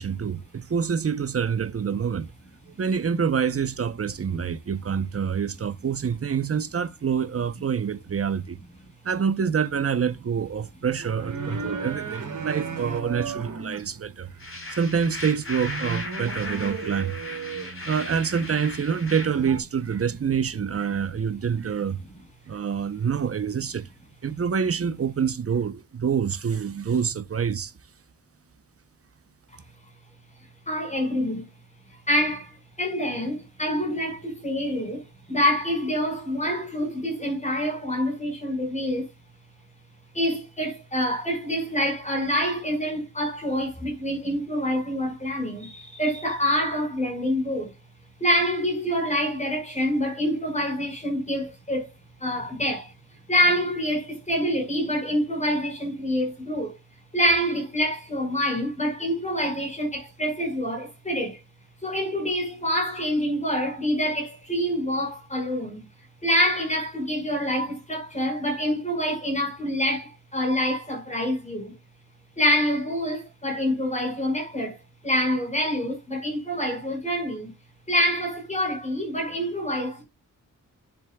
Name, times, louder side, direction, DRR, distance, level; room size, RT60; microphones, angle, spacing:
voice 1, 0.0-2.3 2.8-8.6 9.0-14.3 14.7-17.2 17.8-22.0 22.5-23.9 24.2-27.7, right 7 dB, 45° right, 0.8 m, -26 dB
sound 1, 10.9-19.6, right 5 dB, 70° right, 3.1 m, -36 dB
sound 2, 14.4-19.3, left 2 dB, 40° left, 3.9 m, -37 dB
voice 2, 30.7-31.5 32.1-39.1 40.1-47.7 48.2-51.9 52.2-52.9 53.3-56.8 57.1-61.4 61.8-65.9 66.2-71.8 72.4-74.8 75.0-77.5 77.9-80.0, equal, 20° left, 5.2 m, -26 dB
10.5 x 7.2 x 2.3 m
wide cardioid pair, 115°, 33 cm